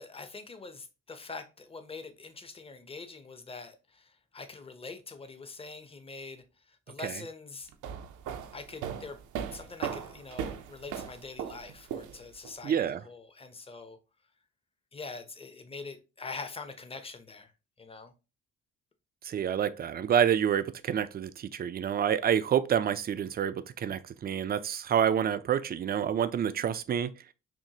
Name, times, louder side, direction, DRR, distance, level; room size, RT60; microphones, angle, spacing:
voice 1, 0.0-6.4 6.9-7.7 8.5-9.2 9.5-14.0 14.9-17.5 17.8-18.1, left 4 dB, 20° left, 0.6 m, -44 dB
sound 1, 7.7-12.5, right 8 dB, 80° right, 0.6 m, -38 dB
voice 2, 12.6-13.0 19.2-27.1, right 9 dB, 30° right, 0.4 m, -28 dB
6.0 x 2.1 x 2.8 m
cardioid pair, 90°, 30 cm